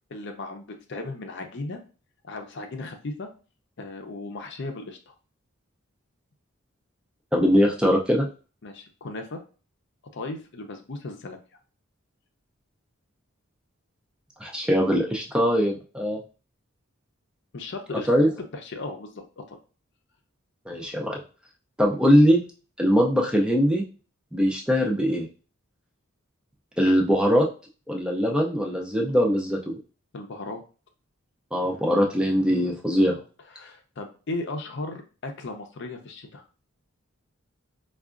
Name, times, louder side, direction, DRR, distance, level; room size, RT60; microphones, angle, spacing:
voice 1, 0.1-1.8 2.2-3.3 3.8-5.1 8.6-9.4 10.1-11.4 17.5-18.1 18.5-19.6 30.1-30.6 33.6-36.4, left 2 dB, 55° left, 4 dB, 0.6 m, -36 dB
voice 2, 7.3-8.3 14.4-16.2 18.1-18.3 20.7-21.2 21.8-22.4 22.8-23.8 24.3-25.3 26.8-27.5 27.9-29.6 31.5-33.1, equal, 5° right, -1 dB, 0.4 m, -21 dB
4.6 x 2.4 x 2.4 m, 0.36 s
head